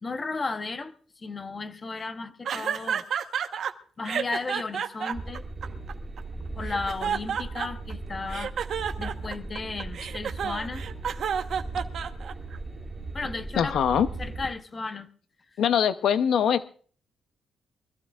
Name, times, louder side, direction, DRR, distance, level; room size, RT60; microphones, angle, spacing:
voice 1, 0.0-3.0 4.0-5.4 6.6-8.6 9.0-10.8 13.1-13.8 14.2-15.1, left 3 dB, 25° left, 0.9 m, -34 dB
sound 1, 2.5-3.7 4.1-6.2 6.6-7.9 8.3-12.6, right 8 dB, 60° right, 1.1 m, -30 dB
sound 2, 5.1-14.5, right 2 dB, 25° right, 4.6 m, -38 dB
voice 2, 13.6-14.1 15.6-16.7, left 8 dB, 70° left, 0.6 m, -22 dB
24.5 x 15.0 x 2.4 m
cardioid pair, 140°, 0 cm